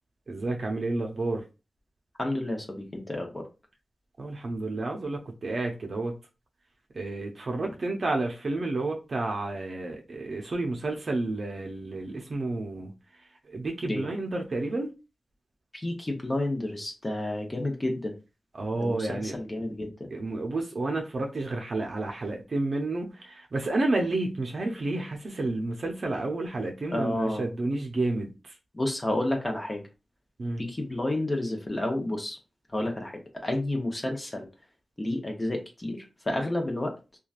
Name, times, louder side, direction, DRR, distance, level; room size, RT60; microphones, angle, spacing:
voice 1, 0.3-1.4 4.2-6.1 6.9-12.9 13.5-14.9 18.5-19.3 20.1-28.5 30.4-30.6, right 2 dB, 60° right, 0.5 m, -30 dB
voice 2, 2.2-3.5 7.6-7.7 13.8-14.0 15.7-18.1 18.8-19.9 26.9-27.5 28.7-29.8 30.6-32.4 32.7-34.5 35.0-36.9, left 1 dB, 30° left, 0.7 m, -30 dB
3.0 x 2.3 x 2.4 m
cardioid pair, 60°, 0 cm